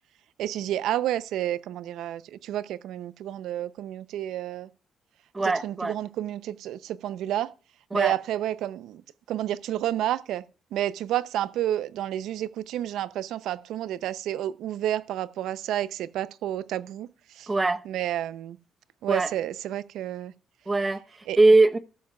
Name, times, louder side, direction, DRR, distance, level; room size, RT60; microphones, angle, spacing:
voice 1, 0.4-4.7 5.6-7.5 7.9-9.0 9.3-10.4 10.7-17.1 17.3-17.5 17.9-18.6 19.0-20.3 21.3-21.4, right 12 dB, 85° right, 0.6 m, -30 dB
voice 2, 5.3-6.0 7.9-8.2 17.5-17.9 19.1-19.3 20.7-21.8, right 2 dB, 20° right, 0.9 m, -21 dB
13.5 x 12.5 x 2.3 m
cardioid pair, 90°, 0 cm